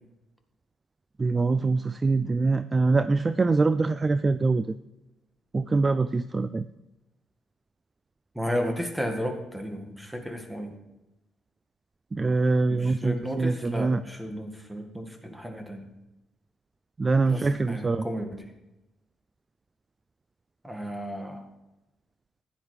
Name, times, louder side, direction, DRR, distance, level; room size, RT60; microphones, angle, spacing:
voice 1, 1.2-4.7 5.5-6.7 12.1-14.0 17.0-18.1, right 3 dB, 25° right, 13 dB, 0.3 m, -24 dB
voice 2, 8.3-10.7 12.7-15.8 17.3-18.4 20.6-21.4, equal, 5° right, 5 dB, 1.7 m, -33 dB
15.0 x 10.0 x 3.3 m, 0.97 s
cardioid pair, 90°, 0 cm